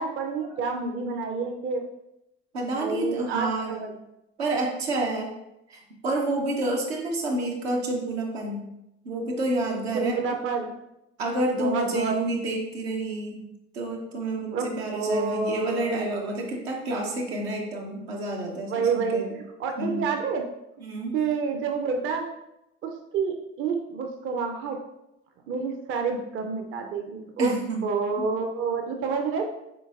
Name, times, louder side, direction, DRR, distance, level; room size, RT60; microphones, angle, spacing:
voice 1, 0.0-1.8 2.7-4.0 9.9-10.7 11.5-12.2 14.5-16.0 18.7-20.5 21.1-22.3 22.8-24.8 25.5-27.6 27.8-29.4, right 5 dB, 40° right, 4 dB, 0.5 m, -28 dB
voice 2, 2.5-3.8 4.4-5.3 5.7-8.6 9.0-10.2 11.2-13.4 13.7-19.3 19.8-20.0 20.8-21.2 27.4-27.8 28.2-28.3, right 2 dB, 80° right, -1 dB, 0.7 m, -29 dB
3.8 x 3.8 x 2.4 m, 0.86 s
figure-of-eight pair, 50°, 31 cm